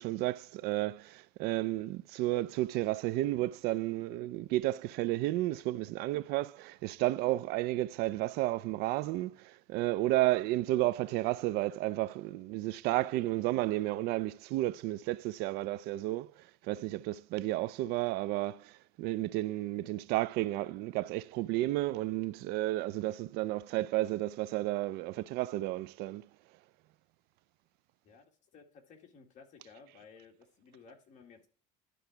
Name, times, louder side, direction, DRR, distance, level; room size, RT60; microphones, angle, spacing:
voice 1, 0.0-26.3, right 17 dB, 75° right, 0.4 m, -32 dB
voice 2, 28.0-31.5, left 5 dB, 45° left, 2.1 m, -56 dB
11.5 x 3.9 x 4.5 m
cardioid pair, 145°, 17 cm